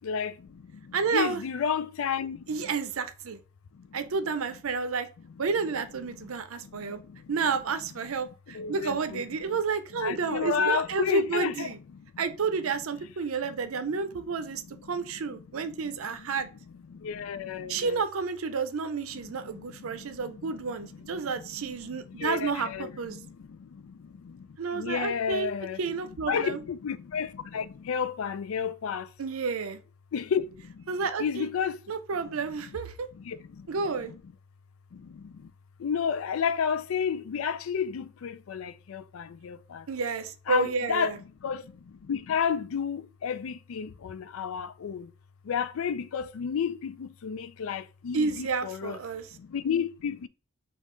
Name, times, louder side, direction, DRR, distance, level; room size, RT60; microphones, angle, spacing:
voice 1, 0.0-2.5 3.7-4.0 6.2-6.3 6.7-7.2 8.5-9.2 10.0-11.7 11.9-12.2 15.7-15.8 16.2-16.3 16.9-18.0 19.2-21.1 21.6-21.7 22.1-25.8 26.3-29.1 30.1-30.9 31.2-31.8 33.1-33.7 34.1-34.2 34.9-35.5 35.8-39.9 40.5-41.1 41.4-45.1 45.4-49.0 49.3-50.3, left 7 dB, 75° left, 0.4 m, -32 dB
voice 2, 0.9-1.4 2.5-3.4 3.9-5.1 5.4-7.0 7.3-11.8 12.2-16.5 17.7-23.2 24.6-25.5 25.8-26.6 29.2-29.8 30.9-31.5 31.9-33.1 33.7-34.1 39.9-41.2 48.1-49.3, right 5 dB, 75° right, 0.5 m, -30 dB
5.4 x 2.4 x 3.7 m
head